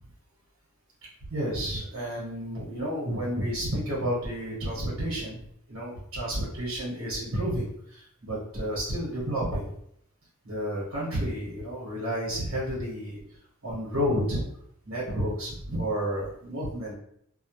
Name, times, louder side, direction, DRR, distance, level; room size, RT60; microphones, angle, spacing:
voice 1, 1.3-5.4 5.7-9.7 10.4-13.2 13.6-14.4 14.8-16.9, equal, 70° right, -7 dB, 0.9 m, -31 dB
2.1 x 2.1 x 2.9 m, 0.71 s
head